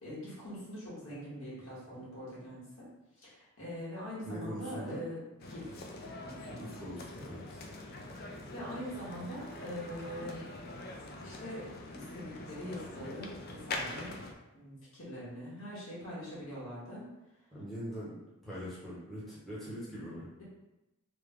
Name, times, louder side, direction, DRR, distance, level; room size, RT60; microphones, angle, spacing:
voice 1, 0.0-2.9 3.1-5.2 5.5-5.8 6.2-6.7 7.9-8.1 8.5-10.5 11.2-14.1 14.5-17.0, equal, 65° left, -7 dB, 1.5 m, -43 dB
voice 2, 4.2-5.1 6.5-7.6 17.5-18.1 18.4-20.2, equal, ahead, -9 dB, 0.9 m, -42 dB
sound 1, 5.4-14.3, left 2 dB, 45° left, 0.4 m, -44 dB
3.4 x 2.2 x 3.6 m, 0.96 s
head